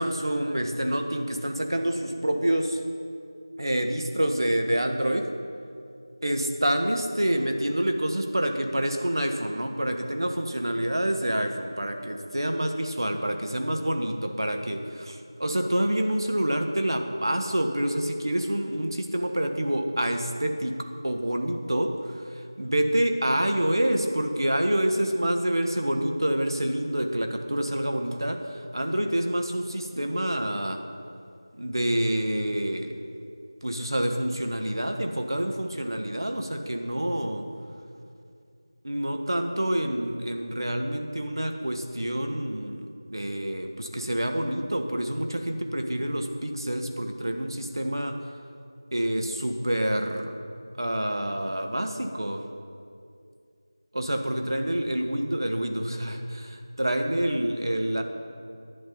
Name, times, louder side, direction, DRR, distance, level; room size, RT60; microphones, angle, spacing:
voice 1, 0.0-2.8 3.6-5.3 6.2-30.9 31.6-33.0 33.6-37.5 38.8-48.3 48.9-50.4 50.8-52.5 53.9-58.0, right 1 dB, 60° right, 5 dB, 1.2 m, -27 dB
11.0 x 8.8 x 5.5 m, 2.4 s
figure-of-eight pair, 175°, 2 cm